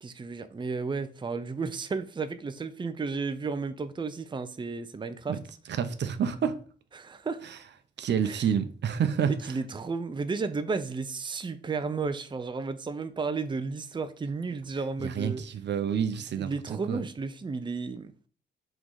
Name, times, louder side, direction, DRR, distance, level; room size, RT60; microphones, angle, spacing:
voice 1, 0.0-5.4 6.9-7.4 8.2-8.5 9.3-15.4 16.3-18.1, right 4 dB, 25° right, 0.7 m, -33 dB
voice 2, 5.8-6.6 8.0-9.3 15.0-16.5 16.9-17.0, right 8 dB, 65° right, 0.8 m, -28 dB
6.0 x 3.8 x 4.8 m
cardioid pair, 85°, 19 cm